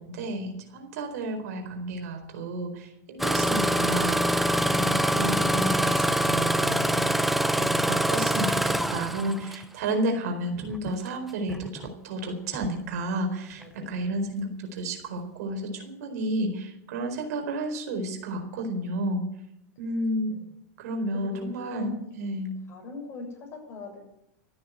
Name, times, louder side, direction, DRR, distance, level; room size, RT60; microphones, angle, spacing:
voice 1, 0.0-7.3 7.6-19.2 19.8-20.4 20.8-22.5, right 1 dB, 70° right, 4 dB, 4.3 m, -32 dB
Engine starting, 3.2-9.6 10.6-10.9 11.5-11.9 12.5-12.7, equal, ahead, 0.7 m, -25 dB
voice 2, 13.6-14.1 20.3-20.4 21.1-22.4 22.7-24.0, left 3 dB, 30° left, 1 dB, 7.1 m, -40 dB
14.0 x 9.7 x 8.2 m, 0.80 s
supercardioid pair, 130°, 9 cm